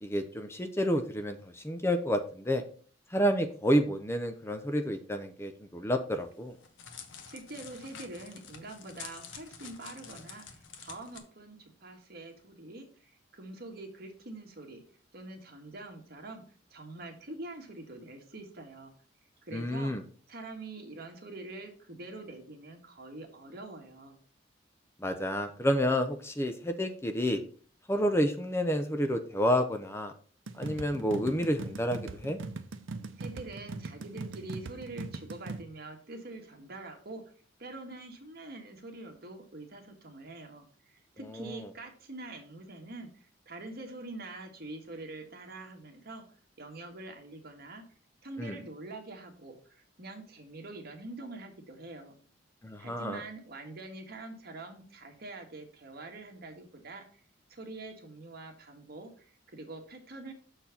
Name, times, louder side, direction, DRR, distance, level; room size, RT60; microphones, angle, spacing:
voice 1, 0.0-2.6 3.1-6.6 19.5-20.0 25.0-27.4 27.9-30.1 30.6-32.4 41.2-41.7 48.4-48.6 52.6-53.2, equal, 15° left, 7 dB, 0.6 m, -30 dB
Crackle, 6.2-11.2, left 6 dB, 75° left, 1.1 m, -48 dB
voice 2, 7.2-14.8 15.1-16.4 16.7-18.9 19.4-19.9 20.3-24.2 33.2-37.2 37.6-46.2 46.6-47.8 48.2-52.2 52.8-57.1 57.5-60.3, right 2 dB, 55° right, 4 dB, 1.6 m, -45 dB
sound 1, 30.5-35.6, right 3 dB, 85° right, 0.6 m, -40 dB
6.8 x 4.4 x 5.7 m, 0.43 s
head